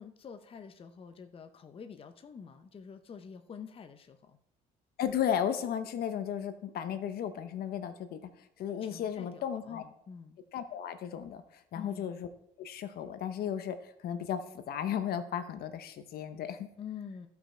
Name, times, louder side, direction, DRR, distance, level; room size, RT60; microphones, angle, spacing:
voice 1, 0.0-4.4 8.8-10.4 11.7-12.1 16.8-17.3, left 7 dB, 35° left, 9 dB, 0.7 m, -47 dB
voice 2, 5.0-9.8 10.5-12.3 12.6-16.7, left 9 dB, 65° left, 10 dB, 0.9 m, -35 dB
14.5 x 5.8 x 4.3 m, 0.75 s
cardioid pair, 110°, 17 cm